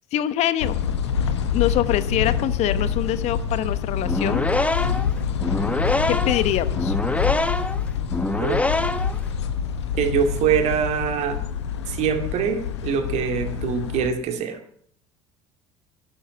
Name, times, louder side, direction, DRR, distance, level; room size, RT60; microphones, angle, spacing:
voice 1, 0.1-0.8 1.5-4.4 6.1-7.0, left 12 dB, 50° left, 15 dB, 1.0 m, -24 dB
sound 1, 0.6-14.1, left 7 dB, 75° left, 1.2 m, -26 dB
sound 2, 4.0-9.2, left 2 dB, 10° left, 1.1 m, -25 dB
voice 2, 10.0-11.4 11.9-14.6, right 7 dB, 50° right, 7 dB, 2.3 m, -24 dB
11.5 x 10.5 x 8.8 m, 0.65 s
figure-of-eight pair, 65°, 15 cm